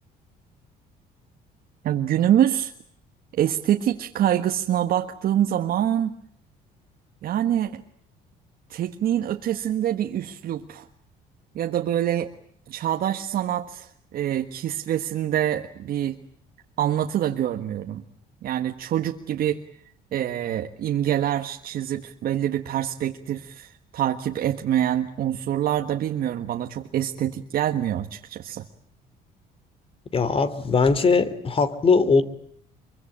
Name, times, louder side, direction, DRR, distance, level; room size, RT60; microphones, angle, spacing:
voice 1, 1.8-2.7 3.3-6.1 7.2-7.8 8.7-10.9 11.5-12.3 12.7-16.2 16.8-18.0 18.4-19.6 20.1-28.6, right 11 dB, 60° right, 5 dB, 1.6 m, -25 dB
voice 2, 30.1-32.2, left 4 dB, 35° left, 14 dB, 2.9 m, -20 dB
25.5 x 23.5 x 8.8 m, 0.64 s
cardioid pair, 110°, 17 cm